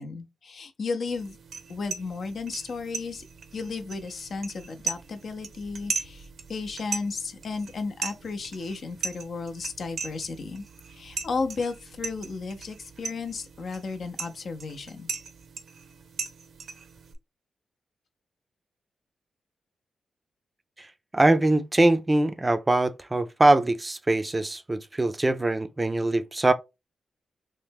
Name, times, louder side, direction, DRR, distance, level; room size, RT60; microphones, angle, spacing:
voice 1, 0.0-1.4 1.7-3.2 3.5-10.6 10.9-15.1, left 4 dB, 65° left, 0.5 m, -34 dB
sound 1, 1.1-17.1, right 5 dB, 70° right, 0.6 m, -38 dB
voice 2, 20.8-26.5, right 2 dB, 25° right, 0.4 m, -23 dB
3.2 x 2.1 x 3.3 m
cardioid pair, 70°, 0 cm